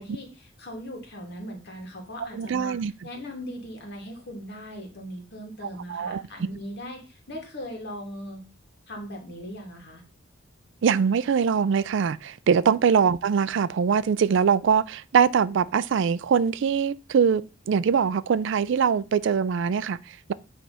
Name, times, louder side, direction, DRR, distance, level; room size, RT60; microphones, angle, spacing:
voice 1, 0.0-2.8 3.0-8.4 8.9-10.0 12.6-12.7, equal, 55° left, 2.2 m, -39 dB
voice 2, 2.3-2.9 5.6-6.2 10.8-20.3, right 6 dB, 65° right, 0.4 m, -23 dB
8.4 x 3.4 x 5.5 m
head